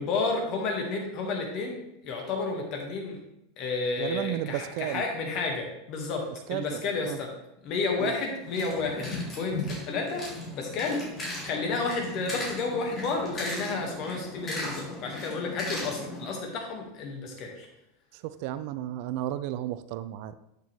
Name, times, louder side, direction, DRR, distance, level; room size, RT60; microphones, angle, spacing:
voice 1, 0.0-3.2 3.6-7.3 7.6-11.0 11.4-17.7, left 3 dB, 45° left, 1 dB, 1.8 m, -31 dB
voice 2, 4.0-5.0 6.5-6.8 7.1-7.2 8.0-8.1 18.1-20.3, right 13 dB, 55° right, 14 dB, 0.3 m, -33 dB
sound 1, 8.4-16.3, left 2 dB, 30° left, 3.0 m, -37 dB
7.9 x 6.5 x 3.4 m, 0.85 s
figure-of-eight pair, 80°, 0 cm